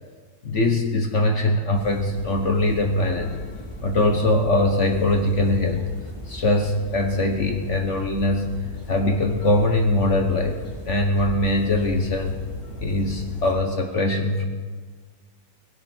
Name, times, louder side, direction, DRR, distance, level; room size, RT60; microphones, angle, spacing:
voice 1, 0.4-3.3 3.8-5.9 6.3-8.6 8.9-12.4 12.8-14.4, left 2 dB, 45° left, 4 dB, 1.3 m, -22 dB
sound 1, 1.7-13.5, left 1 dB, 15° left, 3.8 m, -38 dB
18.0 x 16.5 x 4.4 m, 1.5 s
omnidirectional pair, 2.1 m